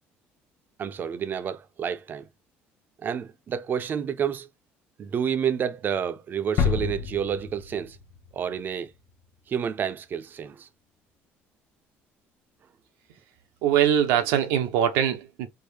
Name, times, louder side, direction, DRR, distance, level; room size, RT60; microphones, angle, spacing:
voice 1, 0.8-2.3 3.0-4.5 5.0-8.0 8.3-8.9 9.5-10.7, right 8 dB, 40° right, 0.5 m, -29 dB
sound 1, 6.6-9.2, left 7 dB, 55° left, 0.7 m, -29 dB
voice 2, 13.6-15.5, right 10 dB, 90° right, 0.8 m, -22 dB
3.6 x 2.1 x 3.3 m
cardioid pair, 105°, 5 cm